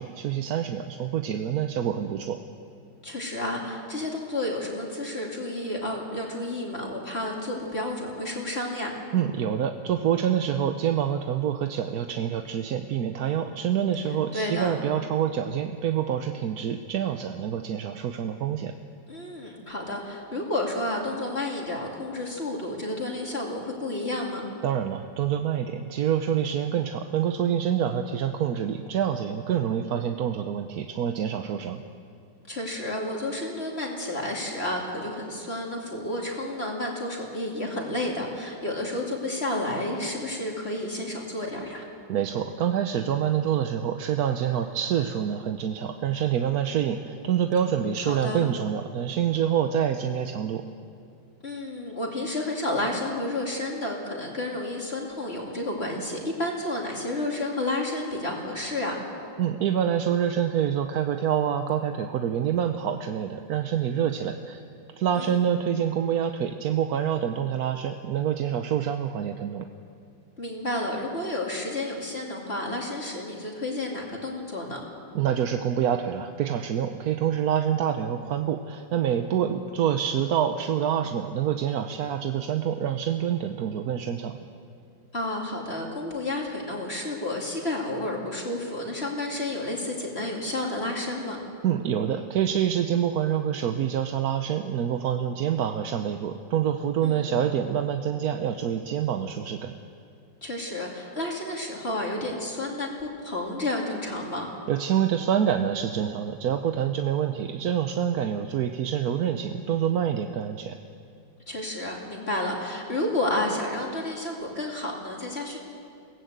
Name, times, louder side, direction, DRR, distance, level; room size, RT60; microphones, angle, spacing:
voice 1, 0.0-2.4 9.1-18.8 24.6-31.8 42.1-50.6 59.4-64.6 65.0-69.7 75.1-84.4 91.6-99.7 104.7-110.8, right 9 dB, 65° right, 6 dB, 1.2 m, -26 dB
voice 2, 3.0-8.9 14.3-14.7 19.1-24.4 32.5-41.9 48.1-48.5 51.4-59.0 65.1-65.4 70.4-74.8 85.1-91.4 97.0-97.3 100.4-104.5 111.5-115.6, left 1 dB, 35° left, -1 dB, 2.8 m, -31 dB
22.5 x 17.5 x 8.0 m, 2.4 s
omnidirectional pair, 2.0 m